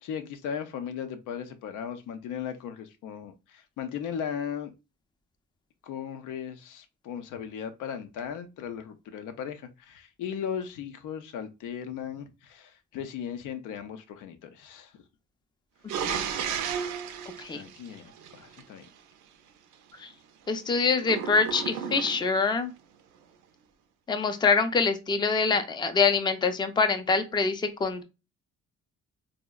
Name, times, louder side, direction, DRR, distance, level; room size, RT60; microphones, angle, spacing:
voice 1, 0.0-4.7 5.8-15.0 16.7-16.9 17.5-18.9, left 8 dB, 90° left, 0.5 m, -37 dB
sound 1, 15.9-18.6 21.0-22.4, right 7 dB, 85° right, 0.5 m, -33 dB
voice 2, 20.5-22.7 24.1-28.0, left 4 dB, 15° left, 0.4 m, -25 dB
3.7 x 2.0 x 2.2 m
cardioid pair, 90°, 30 cm